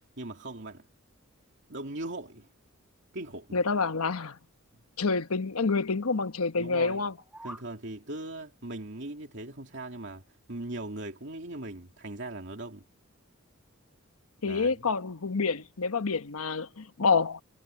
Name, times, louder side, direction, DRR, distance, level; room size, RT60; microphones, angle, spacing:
voice 1, 0.2-0.9 1.7-2.5 3.1-3.6 6.6-7.0 7.4-10.2 10.5-12.8 14.4-14.9, right 2 dB, 55° right, 2.7 m, -39 dB
voice 2, 3.5-4.4 5.0-7.1 14.4-17.4, left 4 dB, 80° left, 1.1 m, -28 dB
sound 1, 7.0-7.7, right 1 dB, 5° right, 2.5 m, -45 dB
head